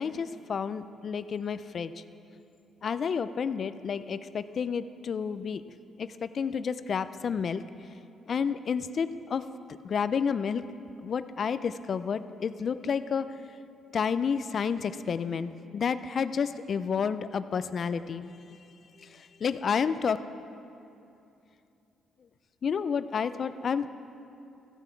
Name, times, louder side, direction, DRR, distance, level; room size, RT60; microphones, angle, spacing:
voice 1, 0.0-1.9 2.8-5.6 6.0-7.6 8.3-9.4 9.8-10.6 11.0-13.3 13.9-18.3 19.0-20.2 22.6-23.9, left 6 dB, 50° left, 13 dB, 0.4 m, -30 dB
14.5 x 6.9 x 4.5 m, 2.7 s
cardioid pair, 90°, 0 cm